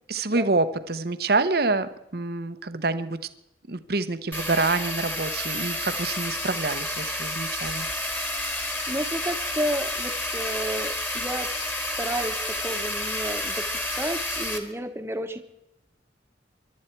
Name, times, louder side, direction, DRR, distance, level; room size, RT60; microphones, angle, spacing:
voice 1, 0.1-3.2 3.7-7.9, right 3 dB, 55° right, 12 dB, 1.0 m, -27 dB
sound 1, 4.3-14.6, left 1 dB, 10° left, 1.7 m, -30 dB
voice 2, 8.9-11.5 12.0-15.4, right 1 dB, 15° right, 7 dB, 1.2 m, -31 dB
23.0 x 12.0 x 4.5 m, 0.87 s
head